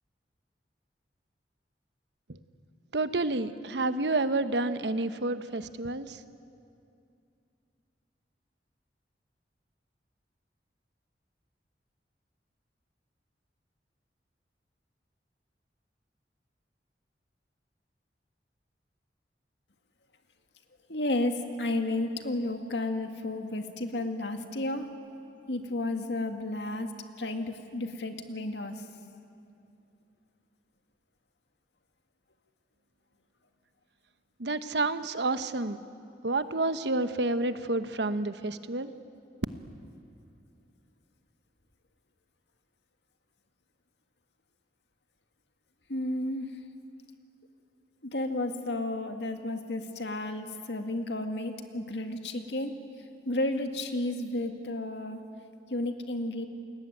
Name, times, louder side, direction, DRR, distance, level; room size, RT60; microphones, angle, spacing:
voice 1, 2.9-6.2 34.4-35.8 36.2-38.9, right 2 dB, 70° right, 11 dB, 1.1 m, -29 dB
voice 2, 20.9-24.9 25.5-26.9 27.2-28.9 45.9-46.5 48.0-52.8 53.3-55.2 55.7-56.5, left 1 dB, 75° left, 6 dB, 2.0 m, -32 dB
29.5 x 20.5 x 9.2 m, 2.5 s
head